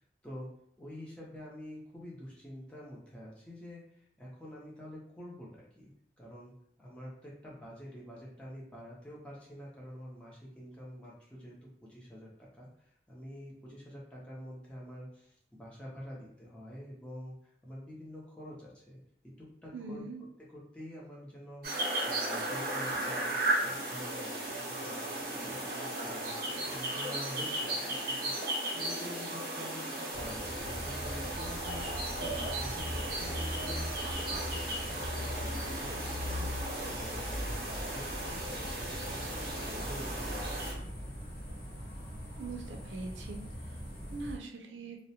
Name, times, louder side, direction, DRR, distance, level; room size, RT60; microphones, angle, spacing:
voice 1, 0.8-5.9 6.2-19.0 19.4-20.0 20.7-21.7 22.0-23.3 23.6-28.3 28.7-33.9 34.2-36.5 36.9-40.6 41.0-41.1, equal, 5° left, -6 dB, 0.5 m, -47 dB
voice 2, 19.7-20.2 42.4-43.8 44.1-45.0, right 3 dB, 90° right, 2 dB, 0.4 m, -42 dB
sound 1, 21.6-40.7, right 1 dB, 55° right, 0.8 m, -36 dB
sound 2, 30.1-44.4, equal, 55° left, 0.9 m, -40 dB
2.3 x 2.0 x 2.7 m, 0.73 s
head